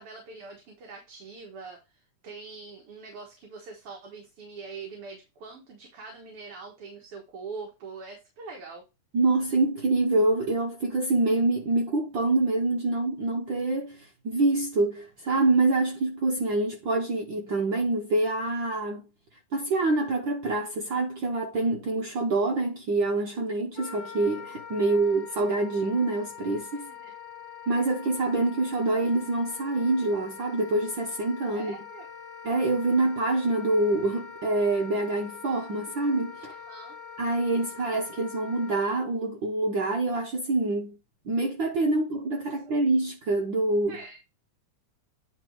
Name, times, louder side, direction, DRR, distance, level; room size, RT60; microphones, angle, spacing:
voice 1, 0.0-8.9 24.8-25.2 26.7-27.1 31.5-32.1 36.4-37.0 42.5-42.6 43.9-44.2, right 4 dB, 55° right, 2.2 m, -43 dB
voice 2, 9.1-19.0 19.5-26.9 27.7-31.7 32.4-36.5 37.2-41.0 41.2-44.0, right 2 dB, 70° right, 1.1 m, -26 dB
Wind instrument woodwind instrument, 23.7-38.8, left 7 dB, 60° left, 1.3 m, -44 dB
9.8 x 3.4 x 4.5 m
omnidirectional pair, 3.4 m